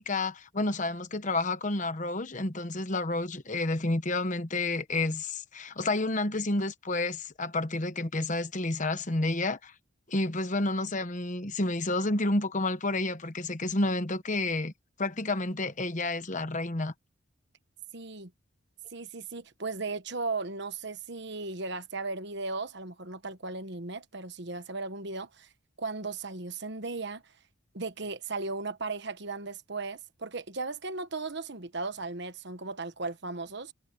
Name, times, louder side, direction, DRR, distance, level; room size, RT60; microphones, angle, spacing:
voice 1, 0.0-9.7 10.1-14.7 15.0-16.9, left 2 dB, 35° left, 1.1 m, -30 dB
voice 2, 17.9-18.3 18.9-25.5 25.8-27.2 27.7-33.7, right 3 dB, 55° right, 1.3 m, -36 dB
head